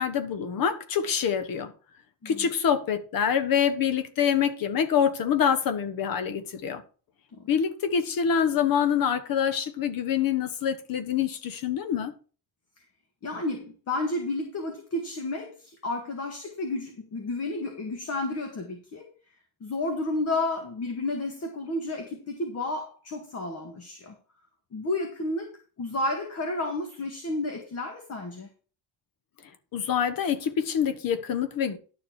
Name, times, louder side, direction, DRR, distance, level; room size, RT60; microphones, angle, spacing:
voice 1, 0.0-1.7 2.2-6.8 7.5-12.1 29.7-31.8, left 8 dB, 50° left, 1.4 m, -26 dB
voice 2, 13.2-19.1 19.6-24.1 24.7-28.5, left 2 dB, 35° left, 1.9 m, -31 dB
11.5 x 7.1 x 4.6 m
cardioid pair, 175°, 43 cm